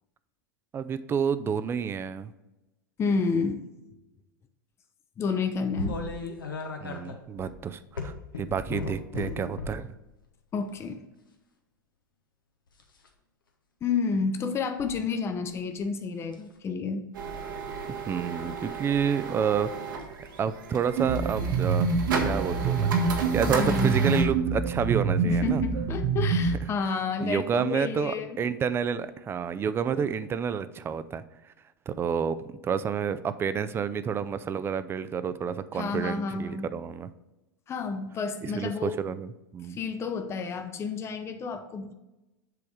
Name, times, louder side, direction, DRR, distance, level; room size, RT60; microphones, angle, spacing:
voice 1, 0.7-2.3 6.8-9.9 17.9-19.7 20.2-21.9 22.2-25.6 27.2-31.5 31.9-37.1 38.4-39.8, right 7 dB, 20° right, 13 dB, 0.4 m, -29 dB
voice 2, 3.0-3.7 5.2-6.0 10.5-11.0 13.8-17.1 23.5-23.9 25.3-28.4 35.7-36.7 37.7-38.9 39.7-41.9, left 5 dB, 25° left, 7 dB, 0.6 m, -30 dB
sound 1, 5.8-9.9 10.6-10.9 12.7-13.1 14.8-14.9 15.4-15.8 16.2-16.5 17.9-18.3 19.9-20.1 21.6-21.8 23.3-23.4 24.0-24.1, left 4 dB, 85° left, 1.0 m, -36 dB
sound 2, 17.1-24.2, right 4 dB, 70° right, 1.3 m, -35 dB
sound 3, 21.0-26.6, right 4 dB, 55° right, 0.7 m, -26 dB
7.7 x 3.5 x 4.8 m, 0.99 s
hypercardioid pair, 95°, 11 cm